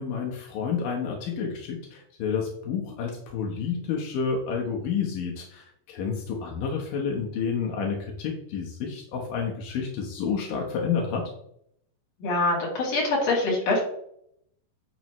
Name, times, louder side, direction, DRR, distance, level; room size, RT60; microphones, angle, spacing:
voice 1, 0.0-11.3, left 6 dB, 85° left, 0 dB, 2.9 m, -30 dB
voice 2, 12.2-13.8, left 2 dB, 50° left, -3 dB, 3.7 m, -24 dB
9.5 x 6.8 x 3.1 m, 0.71 s
omnidirectional pair, 3.8 m